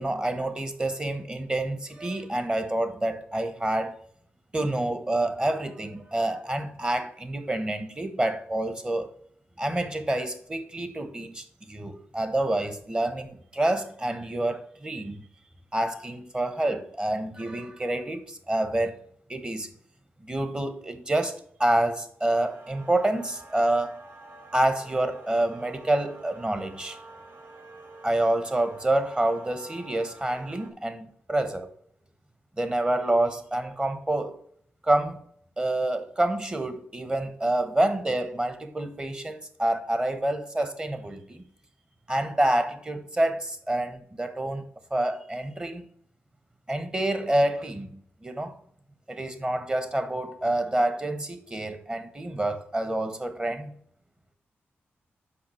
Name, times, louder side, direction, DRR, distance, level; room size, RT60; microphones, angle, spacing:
voice 1, 0.0-4.0 4.5-9.1 9.6-15.2 15.7-19.0 19.3-19.7 20.2-24.0 24.5-27.0 28.0-31.7 32.6-34.3 34.8-35.2 35.6-41.4 42.1-44.6 44.9-45.9 46.7-48.5 49.1-53.7, right 1 dB, 20° right, 1.1 m, -27 dB
sound 1, 22.3-30.7, right 2 dB, 50° right, 1.7 m, -47 dB
5.8 x 4.9 x 6.3 m
cardioid pair, 80°, 5 cm